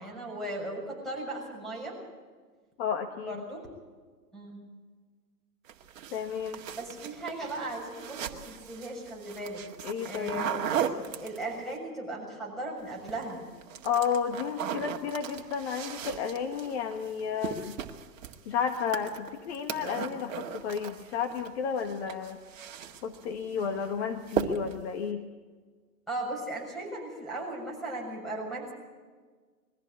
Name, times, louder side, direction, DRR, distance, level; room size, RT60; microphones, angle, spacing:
voice 1, 0.0-2.0 3.2-3.6 4.3-4.6 6.7-9.6 10.0-13.4 26.1-28.7, right 1 dB, ahead, 0 dB, 6.6 m, -37 dB
voice 2, 2.8-3.4 6.1-6.6 9.8-10.5 13.8-17.7 18.4-22.4 23.0-25.2, left 7 dB, 40° left, 6 dB, 1.7 m, -32 dB
sound 1, 5.7-11.7 12.9-13.3 13.6-21.5 21.8-23.3 23.6-23.9 24.3-24.9, right 8 dB, 50° right, 2.0 m, -37 dB
22.0 x 14.5 x 8.5 m, 1.5 s
hypercardioid pair, 130°, 48 cm